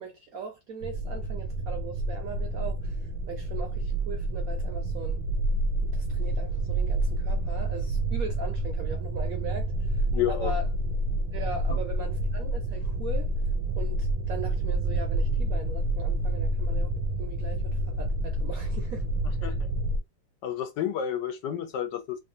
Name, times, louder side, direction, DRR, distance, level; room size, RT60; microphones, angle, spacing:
voice 1, 0.0-2.9 3.3-5.2 5.9-9.7 10.3-10.7 11.3-13.3 13.8-16.9 17.2-19.1, right 4 dB, 70° right, 0.9 m, -39 dB
sound 1, 0.8-20.0, right 1 dB, 85° right, 1.4 m, -28 dB
voice 2, 10.1-10.5 11.7-11.8 19.4-19.6 20.4-22.2, left 10 dB, 75° left, 1.3 m, -30 dB
3.3 x 2.3 x 2.6 m
omnidirectional pair, 2.0 m